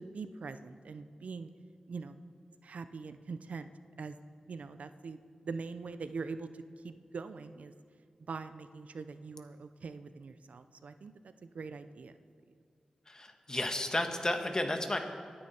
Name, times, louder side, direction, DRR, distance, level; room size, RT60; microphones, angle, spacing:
voice 1, 0.0-1.5 1.9-2.2 2.6-3.7 4.0-4.2 4.5-5.2 5.4-7.7 8.3-12.1, right 4 dB, 80° right, 11 dB, 0.6 m, -43 dB
voice 2, 13.1-15.0, left 1 dB, 30° left, 5 dB, 1.6 m, -32 dB
23.5 x 9.7 x 4.4 m, 2.2 s
wide cardioid pair, 65°, 2 cm